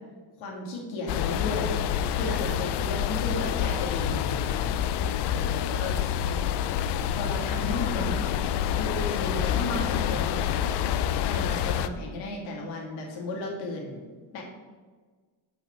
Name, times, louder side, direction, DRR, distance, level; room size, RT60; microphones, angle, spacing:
voice 1, 0.4-1.7 2.1-4.1 5.2-5.9 7.1-8.2 8.8-10.5 11.3-14.0 14.3-14.4, left 2 dB, 85° left, -1 dB, 2.5 m, -34 dB
sound 1, 1.1-11.9, left 9 dB, 60° left, 0.5 m, -27 dB
voice 2, 4.0-6.2, left 1 dB, 35° left, -2 dB, 1.6 m, -44 dB
8.3 x 5.7 x 5.9 m, 1.4 s
cardioid pair, 170°, 46 cm